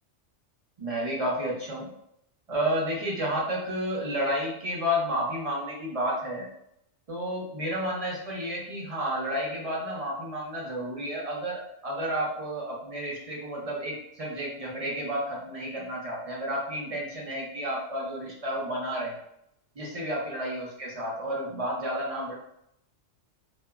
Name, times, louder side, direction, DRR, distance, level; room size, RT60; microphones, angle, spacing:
voice 1, 0.8-1.9 2.5-6.5 7.1-19.2 19.8-22.3, equal, 40° right, -3 dB, 0.5 m, -31 dB
2.8 x 2.2 x 2.3 m, 0.77 s
omnidirectional pair, 1.2 m